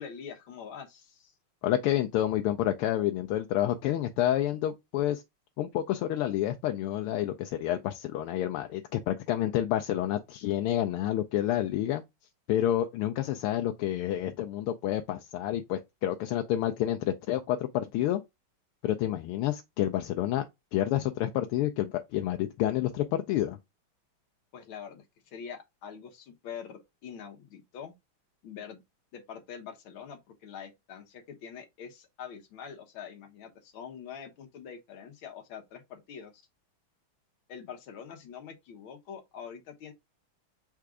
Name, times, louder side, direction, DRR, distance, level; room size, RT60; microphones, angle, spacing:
voice 1, 0.0-1.3 24.5-27.9 28.4-28.8 29.1-36.4 37.5-39.9, left 7 dB, 70° left, 1.8 m, -44 dB
voice 2, 1.6-5.2 5.6-12.0 12.5-18.2 18.8-20.4 20.7-23.6, left 12 dB, 90° left, 1.5 m, -29 dB
4.6 x 2.4 x 4.7 m
omnidirectional pair, 2.4 m